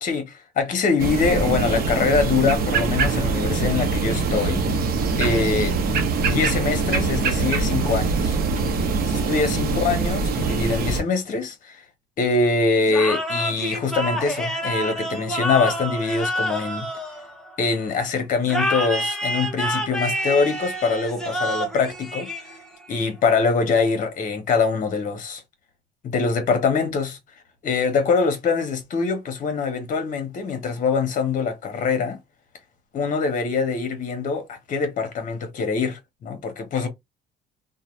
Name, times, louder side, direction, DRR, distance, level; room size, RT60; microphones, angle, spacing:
voice 1, 0.0-4.6 5.2-5.8 6.3-8.4 9.1-11.8 12.2-16.9 17.6-22.3 22.9-25.4 26.0-27.2 27.6-32.2 32.9-36.9, left 4 dB, 50° left, 1.1 m, -23 dB
sound 1, 1.0-11.0, right 4 dB, 65° right, 0.9 m, -23 dB
Motorcycle / Engine starting / Idling, 2.9-9.0, right 1 dB, 50° right, 1.2 m, -31 dB
sound 2, 12.9-17.7 18.5-22.9, equal, 5° left, 0.9 m, -28 dB
2.6 x 2.3 x 3.1 m
cardioid pair, 110°, 17 cm